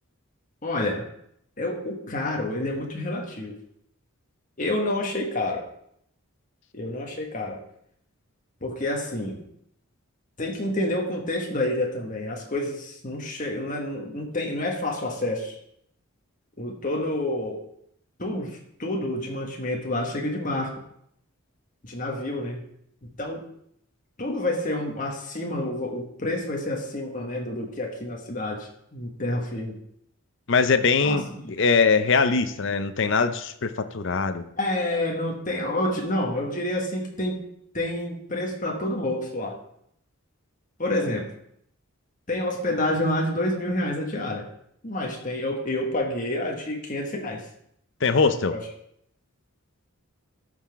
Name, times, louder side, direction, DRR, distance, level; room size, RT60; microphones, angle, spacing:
voice 1, 0.6-1.0 1.6-3.6 4.6-5.6 6.7-7.6 8.6-9.4 10.4-15.5 16.6-17.6 18.2-20.7 21.8-22.6 23.2-23.4 24.2-29.8 31.0-31.4 34.6-37.4 37.7-39.5 40.8-41.3 42.3-44.4 44.8-47.4 48.5-48.6, left 1 dB, 35° left, 0 dB, 1.6 m, -28 dB
voice 2, 30.5-34.5 48.0-48.6, left 4 dB, 55° left, 9 dB, 0.6 m, -22 dB
13.0 x 5.9 x 3.6 m, 0.71 s
head